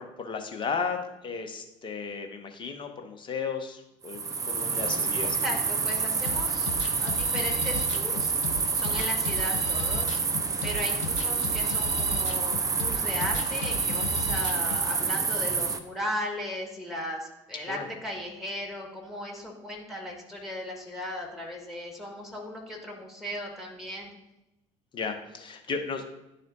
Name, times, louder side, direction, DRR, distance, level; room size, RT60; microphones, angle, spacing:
voice 1, 0.0-4.2 4.5-5.4 8.9-9.0 17.7-17.9 24.9-26.1, left 5 dB, 30° left, 5 dB, 0.9 m, -34 dB
sound 1, 4.0-15.8, right 5 dB, 20° right, 0.5 m, -28 dB
voice 2, 5.2-6.7 7.0-8.3 8.7-10.2 10.6-24.1, left 1 dB, ahead, -1 dB, 1.7 m, -36 dB
sound 2, 6.3-14.9, left 4 dB, 75° left, 0.5 m, -37 dB
10.5 x 4.2 x 2.7 m, 0.92 s
figure-of-eight pair, 60°, 16 cm